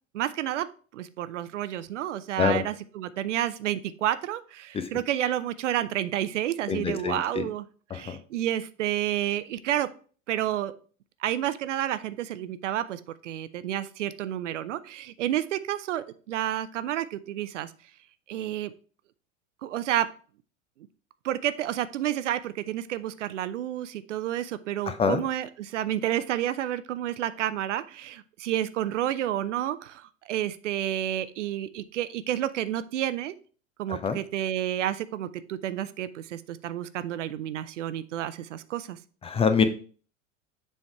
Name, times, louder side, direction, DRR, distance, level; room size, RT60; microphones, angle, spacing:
voice 1, 0.1-0.7 0.9-7.6 7.9-9.9 10.3-10.7 11.2-17.7 18.3-18.7 19.6-20.1 21.2-33.3 33.8-39.0, right 12 dB, 70° right, 14 dB, 0.6 m, -30 dB
voice 2, 6.7-7.5 7.9-8.2 24.9-25.2 33.9-34.2 39.2-39.6, left 6 dB, 15° left, 10 dB, 0.5 m, -25 dB
7.1 x 3.5 x 4.5 m, 0.41 s
figure-of-eight pair, 80°, 38 cm